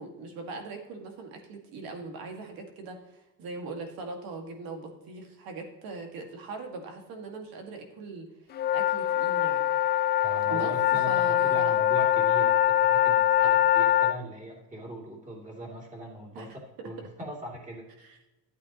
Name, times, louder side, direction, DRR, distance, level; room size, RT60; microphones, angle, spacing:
voice 1, 0.0-8.3 8.7-9.7 10.5-11.8 16.4-16.5 18.0-18.2, right 3 dB, 75° right, 3 dB, 2.0 m, -40 dB
sound 1, 8.5-14.2, left 11 dB, 30° left, 0.3 m, -23 dB
voice 2, 10.2-16.5 16.8-17.8, right 1 dB, 20° right, -2 dB, 2.9 m, -40 dB
12.5 x 8.3 x 3.0 m, 1.0 s
cardioid pair, 145°, 35 cm